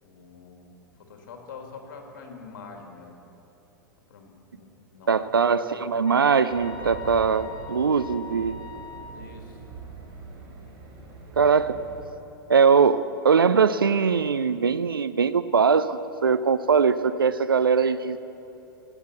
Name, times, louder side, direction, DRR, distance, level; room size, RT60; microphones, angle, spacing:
voice 1, 0.0-3.1 4.1-5.8 9.1-9.6 11.4-11.7, left 5 dB, 55° left, 3 dB, 2.3 m, -45 dB
voice 2, 5.1-8.5 11.4-11.8 12.5-18.2, right 6 dB, 80° right, 13 dB, 0.4 m, -21 dB
sound 1, 6.1-9.3, left 4 dB, 40° left, 0.9 m, -42 dB
Race car auto racing, 6.5-12.1, right 3 dB, 40° right, 3.9 m, -43 dB
16.5 x 8.1 x 8.2 m, 3.0 s
figure-of-eight pair, 95°, 12 cm